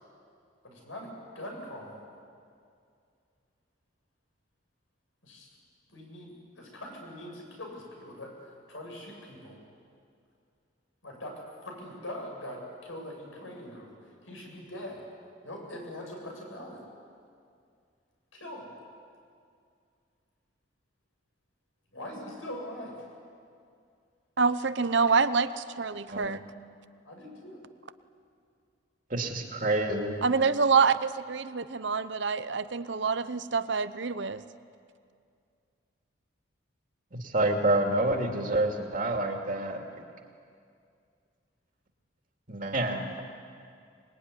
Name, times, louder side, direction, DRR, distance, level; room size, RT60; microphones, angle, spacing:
voice 1, 0.6-2.0 5.2-5.5 5.9-8.3 8.7-9.6 11.0-11.3 11.6-13.9 14.2-15.0 15.4-16.8 18.3-18.7 21.9-23.0 27.1-27.6, left 1 dB, 80° left, 0 dB, 7.5 m, -42 dB
voice 2, 24.4-26.4 30.2-34.4, right 5 dB, 60° right, 13 dB, 0.8 m, -26 dB
voice 3, 29.1-30.2 37.1-40.0 42.5-43.2, right 2 dB, 40° right, 2 dB, 2.5 m, -28 dB
24.5 x 21.5 x 9.8 m, 2.3 s
head